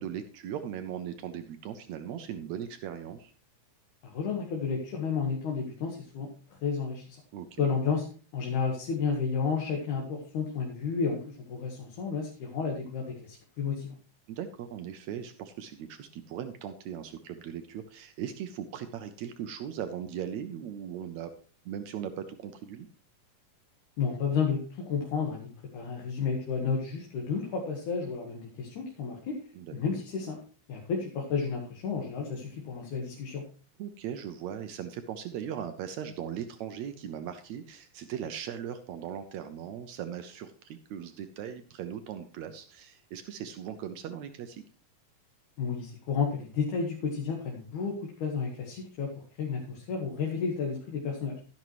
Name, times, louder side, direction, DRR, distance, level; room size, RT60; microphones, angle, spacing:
voice 1, 0.0-3.3 7.3-7.7 14.3-21.3 21.6-22.9 29.5-29.8 33.8-44.6, right 9 dB, 80° right, 9 dB, 1.6 m, -39 dB
voice 2, 4.0-6.3 6.6-7.2 7.6-8.1 8.3-13.9 24.0-29.4 29.7-30.4 30.7-33.4 45.6-49.1 49.4-51.3, left 5 dB, 65° left, 0 dB, 2.8 m, -31 dB
12.0 x 11.0 x 3.1 m, 0.39 s
omnidirectional pair, 4.0 m